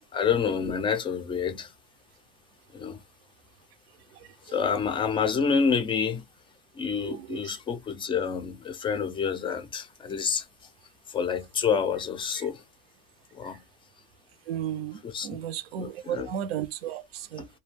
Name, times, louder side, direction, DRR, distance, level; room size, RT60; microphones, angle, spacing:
voice 1, 0.1-1.7 2.7-3.0 4.5-6.2 6.8-10.4 11.1-12.6 13.3-13.6 15.0-15.3 15.8-16.3 17.4-17.5, left 6 dB, 15° left, 0.4 m, -28 dB
voice 2, 7.0-7.4 14.5-17.4, right 10 dB, 85° right, 0.6 m, -34 dB
2.4 x 2.2 x 3.3 m
supercardioid pair, 130°, 29 cm